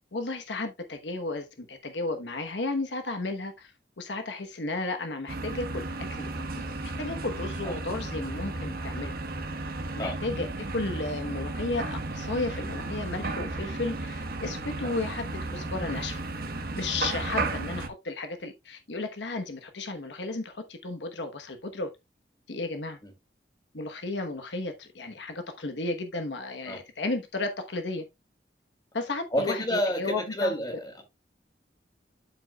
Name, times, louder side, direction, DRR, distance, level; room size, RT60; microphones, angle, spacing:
voice 1, 0.1-3.7 4.0-5.9 6.1-6.3 6.6-6.7 7.0-9.2 9.9-16.2 16.7-21.9 22.5-23.0 23.7-28.0 28.9-30.5, left 2 dB, 80° left, 1.1 m, -33 dB
sound 1, 5.3-17.9, right 2 dB, 55° right, 1.1 m, -34 dB
voice 2, 29.3-31.0, equal, 25° left, 2.6 m, -30 dB
12.0 x 5.1 x 2.3 m
head